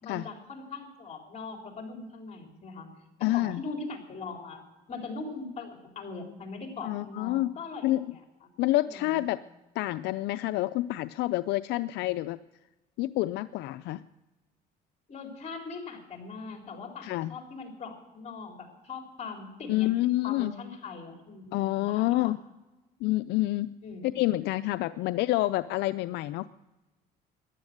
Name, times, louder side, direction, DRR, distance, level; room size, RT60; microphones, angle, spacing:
voice 1, 0.0-2.9 3.3-4.6 4.9-8.2 8.9-9.2 15.1-19.9 20.2-22.4 23.8-24.1, left 4 dB, 40° left, 2 dB, 3.9 m, -41 dB
voice 2, 3.2-3.6 6.8-7.5 7.8-8.0 8.6-9.4 9.8-12.4 13.0-14.0 17.0-17.3 19.7-20.5 21.5-22.4 23.0-23.7 24.0-26.5, left 17 dB, 85° left, 13 dB, 0.4 m, -28 dB
14.5 x 11.5 x 7.8 m, 1.1 s
cardioid pair, 110°, 17 cm